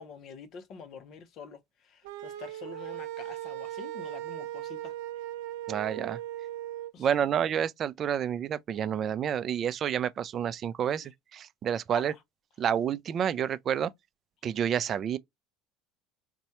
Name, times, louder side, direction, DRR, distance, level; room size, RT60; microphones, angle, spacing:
voice 1, 0.0-4.9 6.9-7.2 11.9-12.1, left 5 dB, 50° left, 0.7 m, -46 dB
sound 1, 2.0-6.9, right 13 dB, 80° right, 0.7 m, -38 dB
voice 2, 5.7-6.2 7.0-12.1 12.6-13.9 14.4-15.2, right 9 dB, 40° right, 0.4 m, -29 dB
4.0 x 2.2 x 2.8 m
supercardioid pair, 110°, 0 cm